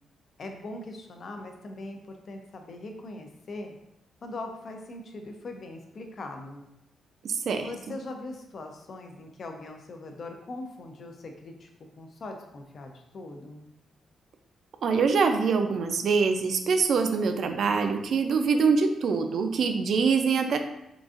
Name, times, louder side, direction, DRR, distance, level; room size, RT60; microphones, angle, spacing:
voice 1, 0.4-3.7 4.2-6.7 7.4-11.7 12.0-13.7, left 2 dB, 45° left, 4 dB, 0.4 m, -41 dB
voice 2, 7.2-7.7 14.8-20.6, right 5 dB, 55° right, 6 dB, 0.3 m, -24 dB
3.8 x 2.5 x 2.4 m, 0.85 s
cardioid pair, 140°, 0 cm